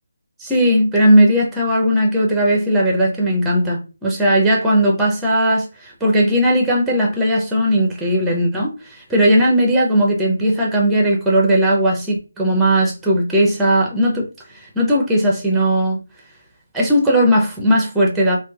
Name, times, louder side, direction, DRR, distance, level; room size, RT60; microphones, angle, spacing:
voice 1, 0.4-14.3 14.5-16.0 16.7-18.4, equal, 5° right, 0.5 m, -17 dB
3.0 x 2.1 x 2.3 m
figure-of-eight pair, 160°, 0 cm